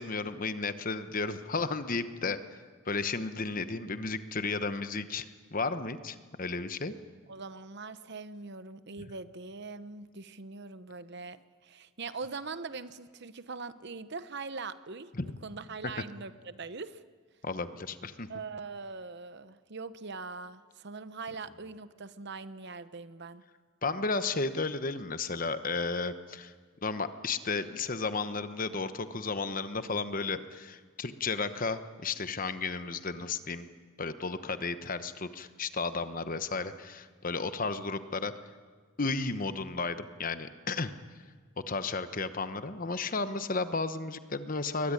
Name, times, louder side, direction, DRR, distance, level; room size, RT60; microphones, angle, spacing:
voice 1, 0.0-6.9 15.1-15.2 17.4-18.3 23.8-26.5 26.8-33.7 34.0-38.3 39.0-40.9 41.7-44.9, left 4 dB, 40° left, 11 dB, 1.0 m, -33 dB
voice 2, 7.3-17.0 18.3-23.4, right 4 dB, 50° right, 13 dB, 0.9 m, -42 dB
22.5 x 19.0 x 9.9 m, 1.5 s
head